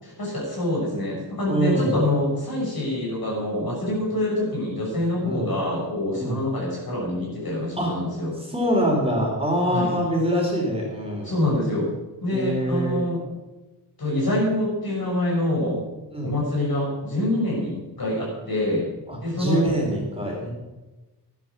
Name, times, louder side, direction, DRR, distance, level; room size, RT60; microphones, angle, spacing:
voice 1, 0.0-8.4 9.7-9.9 11.2-11.9 12.2-13.2 14.0-15.8 16.2-18.9 19.2-19.6, left 1 dB, 60° left, -3 dB, 6.2 m, -25 dB
voice 2, 1.5-2.0 5.2-5.5 6.1-6.4 7.8-7.9 8.5-11.3 12.3-13.0 16.1-16.3 19.1-20.5, right 1 dB, 15° right, -2 dB, 3.9 m, -24 dB
13.0 x 10.5 x 6.2 m, 1.1 s
wide cardioid pair, 115°, 41 cm